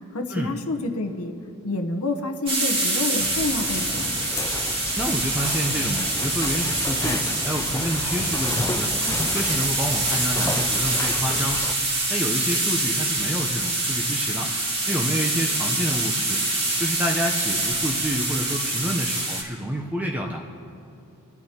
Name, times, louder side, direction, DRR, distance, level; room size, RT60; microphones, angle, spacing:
voice 1, 0.1-1.3 1.6-4.1, left 2 dB, 75° left, 5 dB, 1.0 m, -28 dB
sound 1, 2.5-19.4, right 2 dB, 25° right, 2.3 m, -25 dB
sound 2, 3.2-11.7, left 3 dB, 15° left, 0.3 m, -32 dB
voice 2, 4.9-9.0 9.3-11.6 12.1-14.5 14.9-16.4 16.8-20.4, equal, 5° right, 0 dB, 0.7 m, -28 dB
24.5 x 11.0 x 2.9 m, 2.6 s
head